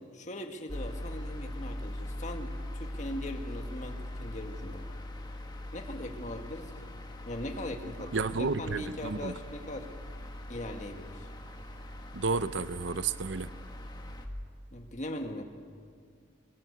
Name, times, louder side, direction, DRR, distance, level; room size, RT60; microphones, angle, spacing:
voice 1, 0.1-4.9 5.7-6.9 7.2-9.9 10.5-11.3 14.7-15.4, left 1 dB, 35° left, 4 dB, 1.9 m, -40 dB
sound 1, 0.7-14.3, left 1 dB, 20° left, 1.7 m, -41 dB
voice 2, 8.1-9.4 12.1-13.5, right 4 dB, 60° right, 14 dB, 0.7 m, -31 dB
23.5 x 22.5 x 8.2 m, 2.1 s
head